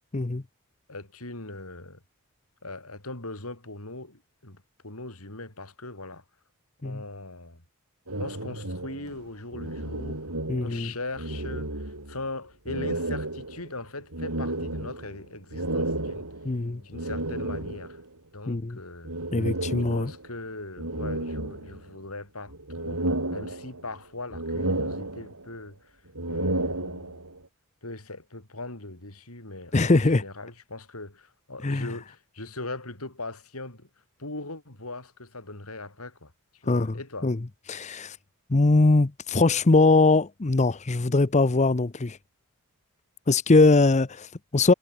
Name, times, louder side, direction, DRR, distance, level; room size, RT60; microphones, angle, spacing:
voice 1, 0.9-2.0 2.6-6.2 6.8-7.6 8.2-10.2 10.6-16.3 16.8-18.0 18.3-19.1 19.9-25.9 26.3-27.2 27.8-33.9 34.2-37.3, left 2 dB, 75° left, 5.7 m, -40 dB
sound 1, 8.1-10.9 11.1-12.3 12.7-18.1 19.0-20.3 20.8-22.1 22.5-24.0 24.3-25.6 26.1-27.4, right 1 dB, 85° right, 6.7 m, -32 dB
voice 2, 10.5-10.9 16.4-16.8 18.5-18.8 19.3-20.1 29.7-30.2 31.6-31.9 36.7-36.9 37.2-37.4 37.7-38.2 38.5-42.2 43.3-44.7, left 3 dB, 30° left, 0.7 m, -21 dB
head